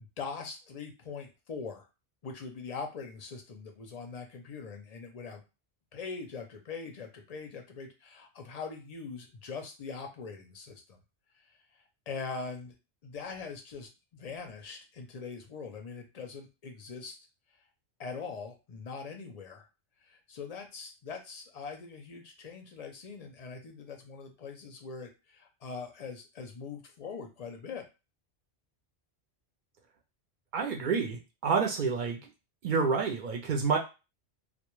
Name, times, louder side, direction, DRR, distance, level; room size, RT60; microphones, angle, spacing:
voice 1, 0.0-1.9 2.2-5.4 5.9-11.0 12.1-12.7 13.0-17.2 18.0-19.7 20.0-27.8, left 5 dB, 50° left, 4 dB, 0.5 m, -42 dB
voice 2, 30.5-32.3 32.6-33.8, right 5 dB, 60° right, 1 dB, 0.6 m, -29 dB
2.2 x 2.2 x 3.0 m, 0.28 s
omnidirectional pair, 1.1 m